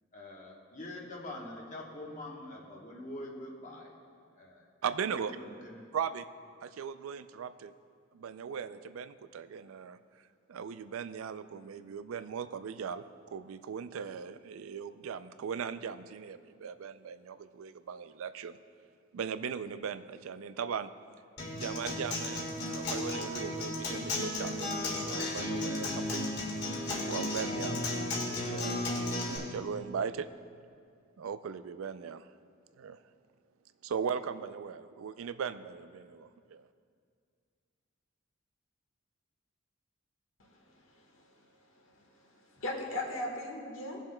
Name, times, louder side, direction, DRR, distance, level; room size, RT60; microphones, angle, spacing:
voice 1, 0.1-4.0 4.4-4.6 5.1-5.8, left 1 dB, 40° left, -2 dB, 1.1 m, -44 dB
voice 2, 4.8-5.4 5.9-6.3 6.6-7.7 8.1-10.0 10.5-18.6 19.1-20.9 21.5-26.3 27.1-27.8 28.5-28.9 29.3-30.3 31.2-32.3 32.8-33.0 33.8-36.6, right 7 dB, 90° right, 13 dB, 0.4 m, -38 dB
Acoustic guitar, 21.4-29.4, left 1 dB, 55° left, 2.1 m, -34 dB
voice 3, 40.4-41.4 41.7-44.0, left 1 dB, 75° left, 0 dB, 1.5 m, -40 dB
19.0 x 7.3 x 2.2 m, 2.2 s
head